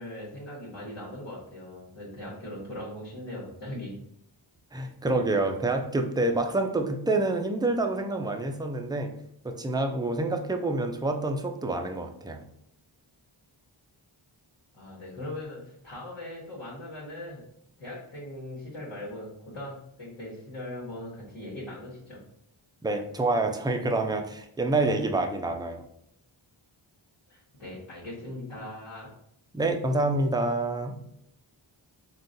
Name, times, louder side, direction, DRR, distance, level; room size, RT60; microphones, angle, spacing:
voice 1, 0.0-4.0 14.7-17.5 17.8-22.2 27.3-29.1, left 1 dB, 85° left, -7 dB, 1.2 m, -40 dB
voice 2, 4.7-9.1 9.4-12.4 22.8-25.8 29.5-31.0, right 2 dB, 10° right, 4 dB, 0.4 m, -27 dB
3.7 x 2.2 x 2.5 m, 0.74 s
cardioid pair, 40°, 49 cm